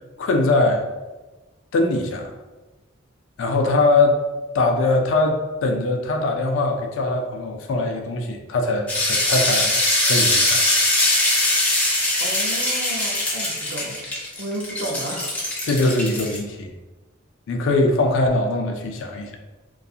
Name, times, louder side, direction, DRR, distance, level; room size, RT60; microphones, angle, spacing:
voice 1, 0.2-0.8 1.7-2.3 3.4-4.2 4.5-10.6 15.6-16.7 17.5-19.3, left 2 dB, 65° left, 3 dB, 0.4 m, -21 dB
sound 1, 8.9-16.4, left 1 dB, 10° left, 0.5 m, -21 dB
voice 2, 12.2-14.0 14.4-15.3, right 1 dB, 55° right, -2 dB, 0.6 m, -32 dB
2.3 x 2.3 x 2.7 m, 1.2 s
head